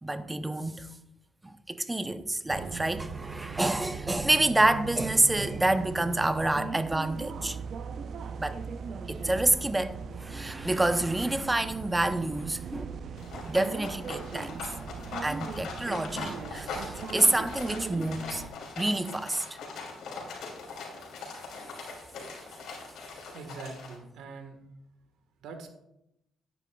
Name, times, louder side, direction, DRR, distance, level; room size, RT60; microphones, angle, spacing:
voice 1, 0.0-0.9 1.4-7.6 8.4-8.6 9.1-13.0 13.5-14.6 15.2-18.4 18.8-19.4, right 2 dB, 15° right, 0.7 m, -28 dB
sound 1, 2.5-18.5, right 6 dB, 60° right, 0.6 m, -39 dB
sound 2, 13.2-24.0, left 4 dB, 75° left, 2.9 m, -41 dB
voice 2, 23.3-24.6 25.4-25.7, right 4 dB, 85° right, 1.4 m, -43 dB
11.0 x 9.2 x 2.3 m
cardioid pair, 90°, 0 cm